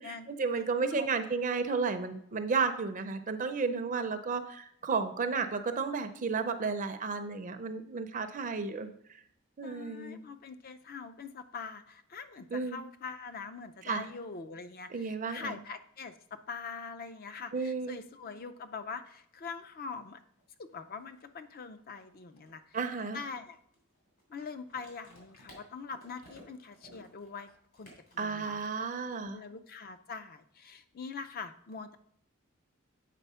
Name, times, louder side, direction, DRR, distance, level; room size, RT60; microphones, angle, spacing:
voice 1, 0.0-9.2 9.6-10.2 12.5-12.8 13.8-14.1 14.9-15.6 17.5-18.0 22.7-23.2 28.2-29.4, right 4 dB, 35° right, 9 dB, 0.5 m, -33 dB
voice 2, 0.6-1.1 9.6-20.2 20.6-22.8 23.1-23.6 24.3-28.6 29.3-32.0, left 5 dB, 40° left, 11 dB, 0.5 m, -43 dB
sound 1, 20.4-20.5 20.7-28.9, equal, 65° left, 3.3 m, -57 dB
8.2 x 4.1 x 5.5 m, 0.68 s
head